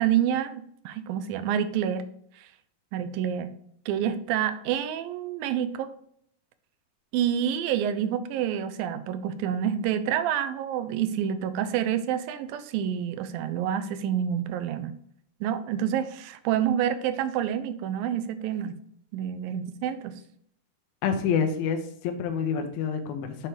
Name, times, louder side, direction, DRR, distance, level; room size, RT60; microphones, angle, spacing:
voice 1, 0.0-2.1 2.4-2.5 2.9-3.5 3.9-5.9 7.1-14.9 15.4-18.7 19.1-20.2, right 9 dB, 80° right, 11 dB, 2.3 m, -28 dB
voice 2, 21.0-23.5, left 6 dB, 90° left, 6 dB, 2.8 m, -27 dB
7.4 x 4.5 x 4.8 m, 0.66 s
omnidirectional pair, 4.2 m